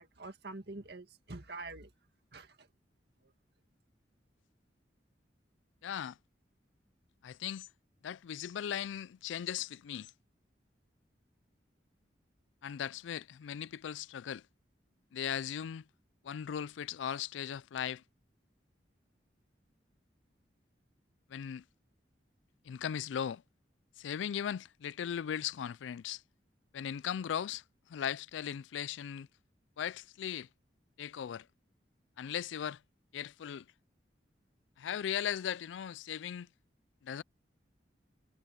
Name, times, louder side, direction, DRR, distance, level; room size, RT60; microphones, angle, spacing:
voice 1, 0.0-1.9 2.3-2.7, right 2 dB, 60° right, 2.0 m, -46 dB
voice 2, 5.8-6.1 7.2-7.7 8.0-10.1 12.6-14.4 15.1-15.8 16.2-18.0 21.3-21.6 22.7-23.4 24.0-26.2 26.7-27.6 27.9-29.3 29.8-30.5 31.0-31.4 32.2-32.8 33.1-33.6 34.8-36.5 37.0-37.2, left 9 dB, 90° left, 0.3 m, -38 dB
head